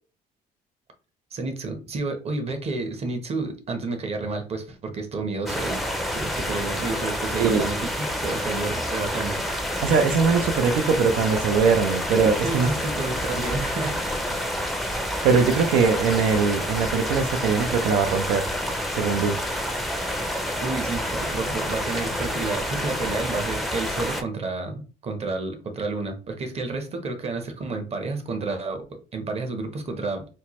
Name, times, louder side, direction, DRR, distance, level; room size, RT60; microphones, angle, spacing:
voice 1, 1.3-5.8 6.1-9.4 12.4-14.4 20.6-30.3, right 3 dB, 35° right, 0.9 m, -30 dB
sound 1, 5.5-24.2, equal, ahead, 0.5 m, -28 dB
voice 2, 7.4-7.7 9.8-12.7 15.2-18.5 18.9-19.4, right 5 dB, 85° right, 0.5 m, -21 dB
4.4 x 2.1 x 3.0 m
cardioid pair, 110°, 17 cm